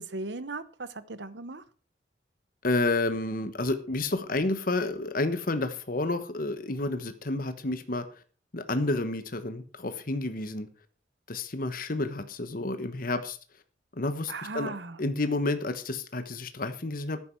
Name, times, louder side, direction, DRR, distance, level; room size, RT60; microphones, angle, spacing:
voice 1, 0.0-1.6 14.3-15.0, right 3 dB, 85° right, 1.0 m, -37 dB
voice 2, 2.6-8.0 8.5-10.7 11.3-13.4 13.9-14.7 15.0-17.2, left 2 dB, 50° left, 1.1 m, -30 dB
13.0 x 10.0 x 4.6 m
head